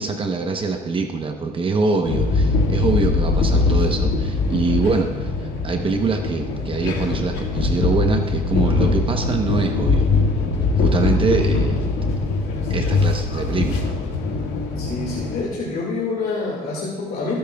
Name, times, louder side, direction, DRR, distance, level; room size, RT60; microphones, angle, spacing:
voice 1, 0.0-10.1 10.8-11.8 12.7-13.8, right 4 dB, 30° right, 4 dB, 0.9 m, -24 dB
sound 1, 2.1-15.4, left 3 dB, 85° left, 1.8 m, -21 dB
voice 2, 14.8-17.4, left 3 dB, 60° left, -4 dB, 2.1 m, -27 dB
24.0 x 8.7 x 2.3 m, 1.4 s
cardioid pair, 110°, 17 cm